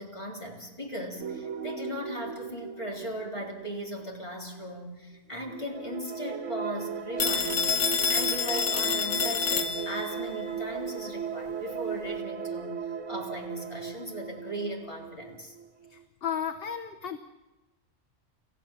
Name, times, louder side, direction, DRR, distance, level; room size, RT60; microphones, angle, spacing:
voice 1, 0.0-12.7 13.1-15.6, equal, 25° left, 0 dB, 3.8 m, -38 dB
sound 1, 1.2-4.8 5.4-16.0, right 7 dB, 75° right, 1.4 m, -37 dB
Telephone, 7.2-10.2, left 6 dB, 75° left, 1.5 m, -28 dB
voice 2, 16.2-17.2, left 8 dB, 55° left, 9 dB, 1.1 m, -32 dB
29.0 x 15.0 x 7.4 m, 1.1 s
omnidirectional pair, 1.3 m